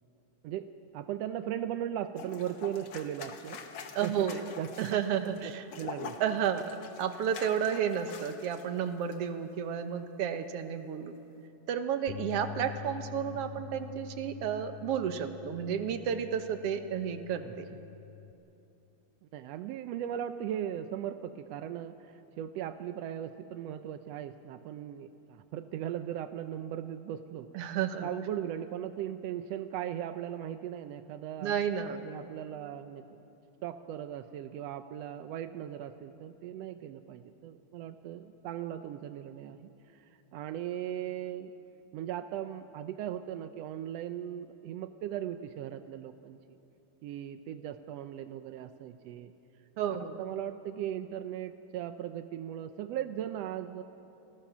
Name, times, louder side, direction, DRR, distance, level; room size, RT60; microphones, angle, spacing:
voice 1, 0.9-3.6 4.0-6.2 17.4-17.5 19.3-27.5 27.9-31.5 32.0-33.2 33.6-40.1 40.3-41.5 41.9-46.4 47.0-49.3 49.8-53.8, right 10 dB, 80° right, 9 dB, 1.5 m, -38 dB
sound 1, 2.2-8.7 9.0-9.2, left 5 dB, 55° left, 1.8 m, -45 dB
voice 2, 4.0-4.4 4.8-5.6 6.2-6.7 7.0-11.1 11.7-17.7 27.5-28.1 31.4-32.0 49.8-50.2, right 8 dB, 60° right, 8 dB, 1.8 m, -32 dB
sound 2, 12.1-18.3, left 10 dB, 85° left, 2.2 m, -46 dB
29.0 x 21.0 x 6.1 m, 2.8 s
omnidirectional pair, 3.6 m